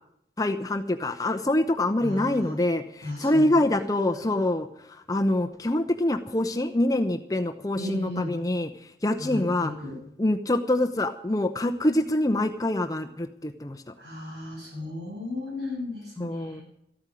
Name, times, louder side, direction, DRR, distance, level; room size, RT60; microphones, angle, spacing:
voice 1, 0.4-8.7 9.0-9.7 10.2-13.8 16.2-16.6, left 1 dB, 20° left, 5 dB, 0.7 m, -25 dB
voice 2, 2.0-2.6 3.0-3.9 4.2-4.4 7.7-8.4 9.2-10.0 14.0-16.6, left 2 dB, 80° right, -1 dB, 6.8 m, -35 dB
14.0 x 8.8 x 9.9 m, 0.74 s
head